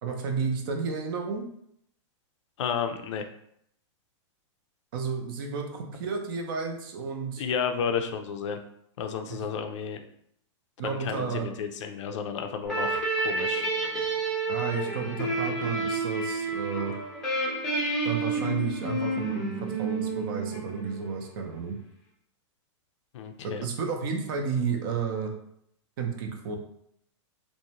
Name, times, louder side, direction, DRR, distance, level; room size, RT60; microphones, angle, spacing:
voice 1, 0.0-1.5 4.9-7.4 9.3-9.4 10.8-11.5 14.5-17.0 18.0-21.8 23.4-25.3 26.0-26.6, right 5 dB, 45° right, 3 dB, 0.5 m, -32 dB
voice 2, 2.6-3.2 7.4-8.6 9.0-10.0 10.8-13.7 23.1-23.7, left 6 dB, 70° left, 6 dB, 0.4 m, -32 dB
sound 1, 12.6-21.1, right 2 dB, 5° left, 0.6 m, -30 dB
2.6 x 2.1 x 2.8 m, 0.72 s
supercardioid pair, 160°, 16 cm